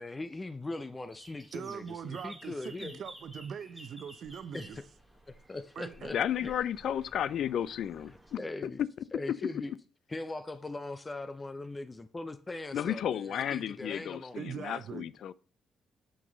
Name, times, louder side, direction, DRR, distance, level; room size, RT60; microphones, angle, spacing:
voice 1, 0.0-3.0 4.5-4.8 5.3-6.5 8.4-8.8 9.1-9.7 10.1-14.4, left 2 dB, 20° left, 0.6 m, -40 dB
sound 1, 1.1-8.4, right 1 dB, ahead, 1.9 m, -53 dB
voice 2, 1.5-4.8 5.8-6.2 14.4-15.1, right 7 dB, 60° right, 0.7 m, -41 dB
voice 3, 6.1-8.1 8.6-8.9 9.3-9.6 12.7-15.3, left 10 dB, 70° left, 0.4 m, -33 dB
8.1 x 6.1 x 3.9 m
cardioid pair, 90°, 0 cm